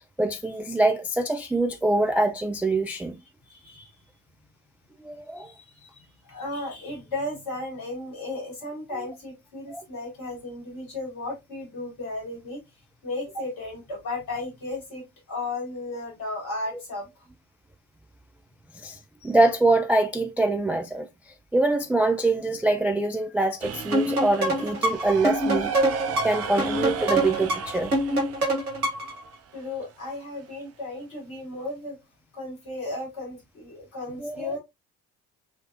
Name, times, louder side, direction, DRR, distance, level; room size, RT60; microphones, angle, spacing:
voice 1, 0.2-3.1 5.0-5.5 9.7-9.8 18.8-21.1 21.5-25.8 26.2-27.9 34.2-34.5, right 2 dB, 5° right, 0.3 m, -24 dB
voice 2, 3.5-4.0 5.4-12.6 13.0-17.0 29.5-32.0 32.3-34.6, left 2 dB, 55° left, 3.5 m, -35 dB
sound 1, 23.6-29.6, right 7 dB, 35° right, 0.7 m, -35 dB
sound 2, 23.9-29.2, right 1 dB, 90° right, 0.7 m, -25 dB
6.1 x 3.2 x 2.5 m
figure-of-eight pair, 50°, 43 cm